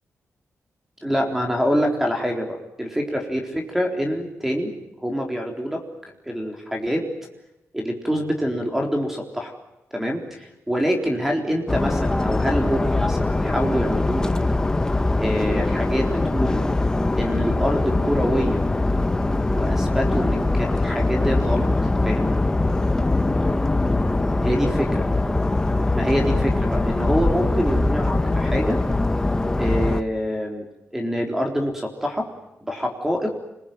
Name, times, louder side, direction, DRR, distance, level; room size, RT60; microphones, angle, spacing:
voice 1, 1.0-4.7 5.0-5.8 6.3-7.1 7.7-9.5 9.9-14.3 15.2-16.6 17.2-18.6 19.5-21.7 22.0-22.3 24.4-25.1 25.9-28.8 29.6-32.3 32.7-33.3, equal, 5° right, 2 dB, 3.9 m, -25 dB
sound 1, 11.7-30.0, left 2 dB, 15° left, 1.1 m, -22 dB
29.0 x 22.0 x 9.2 m, 0.90 s
wide cardioid pair, 175°, 5 cm